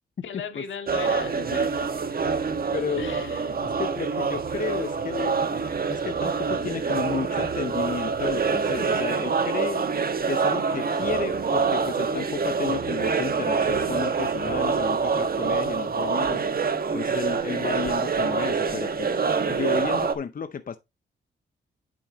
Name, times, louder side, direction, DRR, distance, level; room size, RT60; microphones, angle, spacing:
voice 1, 0.2-1.9 3.0-3.6, left 6 dB, 75° left, 2.2 m, -36 dB
sound 1, 0.9-20.1, right 5 dB, 50° right, 1.5 m, -26 dB
voice 2, 2.7-3.0 3.6-5.5 5.9-9.9 10.2-19.2 19.5-20.8, left 6 dB, 45° left, 0.7 m, -33 dB
9.0 x 7.1 x 2.9 m
cardioid pair, 60°, 20 cm